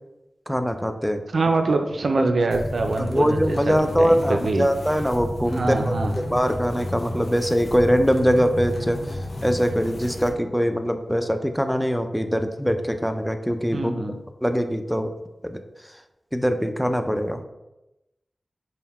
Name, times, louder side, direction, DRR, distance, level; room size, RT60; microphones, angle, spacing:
voice 1, 0.5-1.2 2.1-2.2 3.0-13.9 14.4-15.1 15.4-16.0 16.3-17.4, equal, ahead, 7 dB, 0.3 m, -23 dB
voice 2, 1.3-4.7 5.5-6.2 13.7-14.2, right 3 dB, 75° right, 5 dB, 0.4 m, -24 dB
sound 1, 2.5-10.3, left 1 dB, 75° left, 0.5 m, -32 dB
3.8 x 2.1 x 4.1 m, 0.95 s
wide cardioid pair, 80°, 0 cm